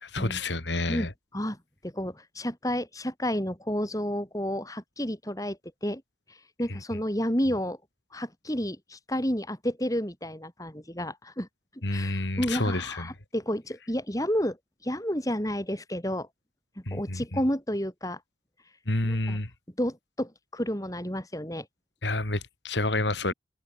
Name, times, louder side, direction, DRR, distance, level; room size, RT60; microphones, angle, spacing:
voice 1, 0.0-1.1 11.8-13.1 16.9-17.4 18.9-19.5 22.0-23.3, left 2 dB, 80° left, 3.3 m, -29 dB
voice 2, 0.9-1.6 1.8-6.0 6.6-7.8 8.1-11.5 11.9-14.6 14.8-16.3 16.9-18.2 19.0-19.4 19.8-21.7, equal, 20° left, 6.4 m, -31 dB
head